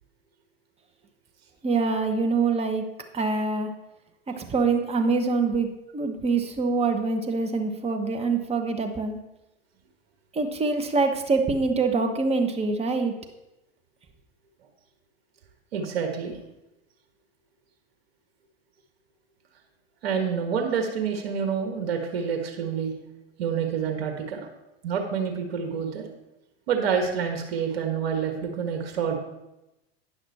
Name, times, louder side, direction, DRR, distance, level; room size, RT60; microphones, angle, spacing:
voice 1, 1.6-2.8 3.1-3.7 4.4-5.7 5.9-9.2 10.3-13.1, right 4 dB, 20° right, 5 dB, 1.1 m, -25 dB
voice 2, 15.7-16.4 20.0-22.9 23.4-24.5 24.8-26.1 26.7-29.2, right 6 dB, 70° right, 4 dB, 1.5 m, -27 dB
10.0 x 6.0 x 4.1 m, 0.94 s
hypercardioid pair, 95°, 30 cm